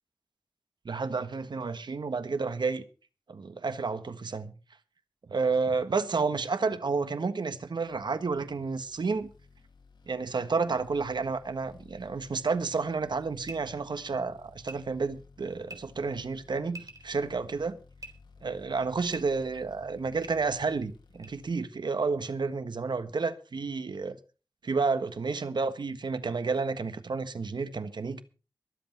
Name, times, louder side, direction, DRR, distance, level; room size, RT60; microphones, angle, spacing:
voice 1, 0.8-2.8 3.3-4.6 5.3-9.3 10.1-17.8 18.4-24.2 24.6-28.2, right 4 dB, 80° right, 1.4 m, -31 dB
sound 1, 7.8-21.6, left 4 dB, 85° left, 2.8 m, -57 dB
sound 2, 13.4-13.6 14.6-14.8 15.7-15.8 16.7-17.1 18.0-18.1 19.1-19.2 20.2-20.3 21.2-21.3, right 1 dB, 45° right, 3.6 m, -43 dB
23.5 x 8.1 x 4.5 m
wide cardioid pair, 70°, 8 cm